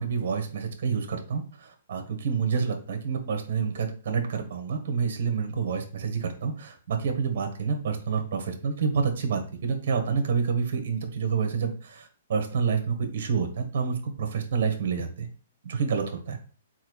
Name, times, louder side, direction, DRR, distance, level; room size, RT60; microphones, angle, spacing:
voice 1, 0.0-15.3 15.6-16.4, right 6 dB, 50° right, 5 dB, 1.6 m, -28 dB
4.7 x 4.5 x 4.7 m, 0.40 s
hypercardioid pair, 170°, 0 cm